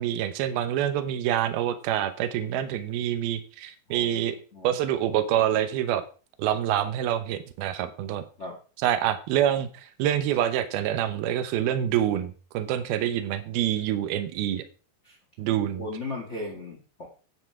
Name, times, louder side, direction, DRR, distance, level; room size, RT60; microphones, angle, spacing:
voice 1, 0.0-4.4 4.6-6.0 6.4-8.2 8.8-14.6 15.4-15.9, right 11 dB, 85° right, 10 dB, 2.9 m, -26 dB
voice 2, 3.9-4.7 5.1-5.2 8.4-8.6 15.0-15.2 15.7-17.1, left 2 dB, 25° left, 0 dB, 1.6 m, -37 dB
10.5 x 9.3 x 4.7 m, 0.37 s
omnidirectional pair, 4.3 m